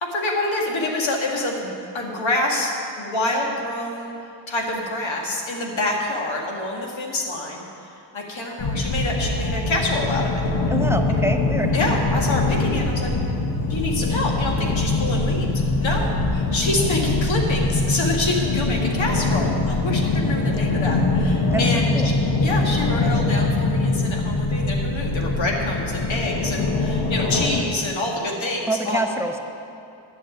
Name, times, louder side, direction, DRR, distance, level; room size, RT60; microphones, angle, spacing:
voice 1, 0.0-7.7 8.1-10.4 11.7-13.1 13.7-15.5 15.8-22.1 22.4-29.0, left 2 dB, 90° left, -1 dB, 2.0 m, -26 dB
sound 1, 8.6-27.6, left 3 dB, 60° left, 1.1 m, -23 dB
voice 2, 10.7-11.7 21.5-21.6 21.9-22.1 28.7-29.4, right 2 dB, 5° right, 4 dB, 0.6 m, -25 dB
11.5 x 6.3 x 9.1 m, 2.7 s
wide cardioid pair, 170°, 45 cm